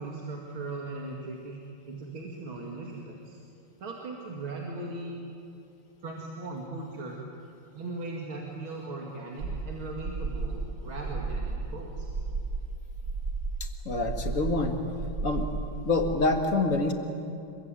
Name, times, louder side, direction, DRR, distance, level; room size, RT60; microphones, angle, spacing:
voice 1, 0.0-1.6 1.9-3.4 3.8-5.1 6.0-7.2 7.7-12.1, right 2 dB, 75° right, -1 dB, 3.2 m, -38 dB
sound 1, 9.4-16.2, right 3 dB, 50° right, 2.2 m, -34 dB
voice 2, 13.9-14.8 15.2-15.5 15.8-16.9, left 3 dB, 40° left, 4 dB, 2.3 m, -26 dB
26.0 x 23.0 x 9.1 m, 2.6 s
omnidirectional pair, 2.2 m